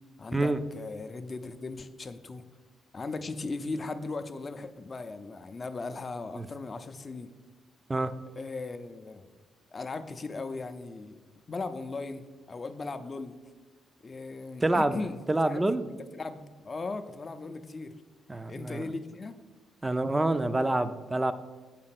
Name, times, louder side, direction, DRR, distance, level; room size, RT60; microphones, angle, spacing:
voice 1, 0.2-2.4 2.9-7.3 8.4-9.3 9.7-11.2 11.5-13.4 14.0-18.0 18.5-19.4, left 3 dB, 35° left, 9 dB, 0.5 m, -38 dB
voice 2, 14.6-15.0 15.3-15.8 18.3-18.9 19.8-21.3, right 2 dB, 15° right, 11 dB, 0.4 m, -27 dB
7.5 x 4.4 x 5.8 m, 1.3 s
cardioid pair, 90°, 0 cm